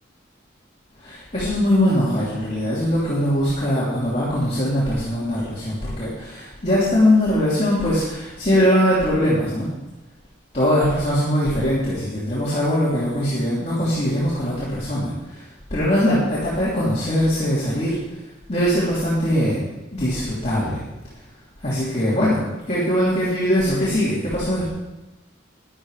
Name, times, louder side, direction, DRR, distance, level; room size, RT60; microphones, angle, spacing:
voice 1, 1.0-9.7 10.5-18.0 18.5-19.6 19.9-20.8 21.6-22.4 22.6-24.7, equal, 35° left, -9 dB, 3.3 m, -21 dB
12.5 x 10.5 x 5.1 m, 1.1 s
head